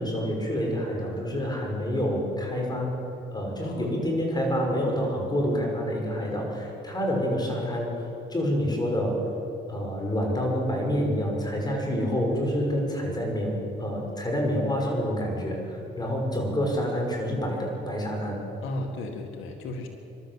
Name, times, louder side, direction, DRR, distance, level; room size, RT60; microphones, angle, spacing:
voice 1, 0.0-2.9 3.3-9.2 9.7-18.4, equal, 20° left, 0 dB, 6.3 m, -27 dB
voice 2, 3.6-4.0 6.2-6.5 18.6-19.9, left 2 dB, 90° left, 4 dB, 2.0 m, -35 dB
26.0 x 12.5 x 8.2 m, 2.9 s
cardioid pair, 90°, 20 cm